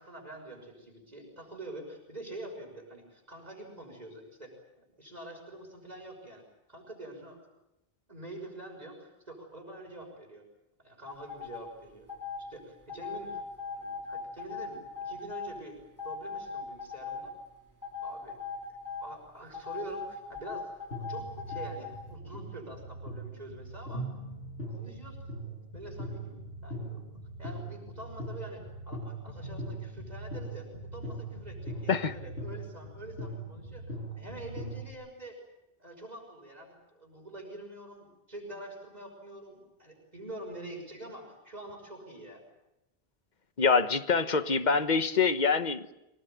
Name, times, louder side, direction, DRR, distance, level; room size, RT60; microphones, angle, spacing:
voice 1, 0.0-6.4 6.7-7.4 8.1-10.5 10.8-12.1 12.4-13.4 13.7-15.8 16.0-17.3 18.0-18.4 19.0-20.7 21.1-24.1 24.7-25.2 25.4-26.4 26.6-27.1 27.4-35.4 35.8-42.4, right 1 dB, 40° right, 6.2 m, -46 dB
sound 1, 11.1-11.6 12.1-12.4 12.9-15.5 16.0-17.3 17.8-19.1 19.5-21.9, left 5 dB, 15° left, 3.5 m, -39 dB
sound 2, 20.9-34.9, right 1 dB, 70° left, 7.4 m, -41 dB
voice 2, 43.6-45.9, left 5 dB, 45° left, 1.4 m, -25 dB
25.5 x 19.0 x 9.2 m
omnidirectional pair, 1.1 m